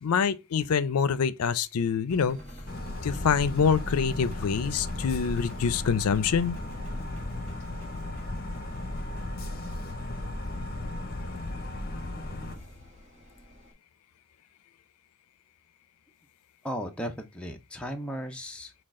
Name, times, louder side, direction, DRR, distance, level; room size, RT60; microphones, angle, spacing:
voice 1, 0.0-2.4 3.0-6.6, left 6 dB, 85° left, 0.4 m, -25 dB
Engine, 2.1-13.7, equal, 30° right, 1.2 m, -45 dB
sound 1, 2.7-12.6, left 2 dB, 40° left, 0.8 m, -36 dB
voice 2, 16.6-18.7, equal, 5° left, 0.5 m, -35 dB
6.3 x 2.4 x 3.6 m
head